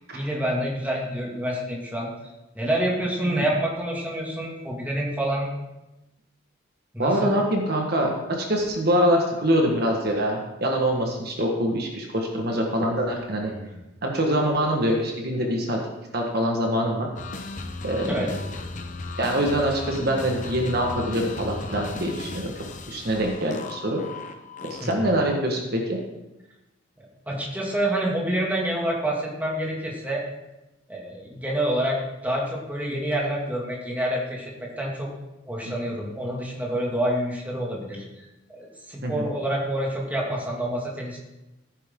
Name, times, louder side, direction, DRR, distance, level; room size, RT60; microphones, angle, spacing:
voice 1, 0.1-5.5 6.9-7.3 13.4-13.8 18.0-18.3 24.8-25.1 27.3-30.2 30.9-35.1 35.4-41.2, right 1 dB, 10° right, -3 dB, 2.3 m, -28 dB
voice 2, 7.0-13.5 14.0-15.8 16.1-17.1 17.8-18.1 19.2-24.0 24.7-26.0 35.6-35.7 39.0-39.3, equal, 50° right, 1 dB, 1.6 m, -24 dB
sound 1, 17.2-25.2, left 2 dB, 35° left, 0.9 m, -36 dB
15.0 x 9.7 x 3.8 m, 0.99 s
head